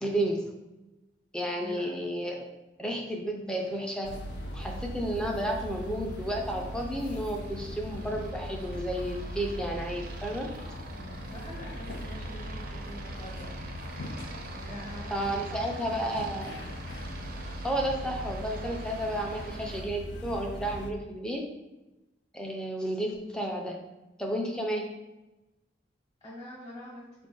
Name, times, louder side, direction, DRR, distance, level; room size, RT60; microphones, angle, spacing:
voice 1, 0.0-0.5 1.3-2.5 2.8-4.1 4.5-10.5 15.1-16.6 17.6-21.5 22.3-23.8 24.2-24.9, right 1 dB, 5° left, 1 dB, 0.4 m, -32 dB
voice 2, 1.5-2.0 10.9-13.7 14.5-16.3 19.4-19.8 26.2-27.1, equal, 20° left, -5 dB, 0.9 m, -45 dB
Aircraft, 3.5-19.8, right 3 dB, 50° right, 0.5 m, -47 dB
sound 1, 4.0-20.9, equal, 65° left, 0.4 m, -39 dB
4.1 x 2.5 x 3.7 m, 1.0 s
head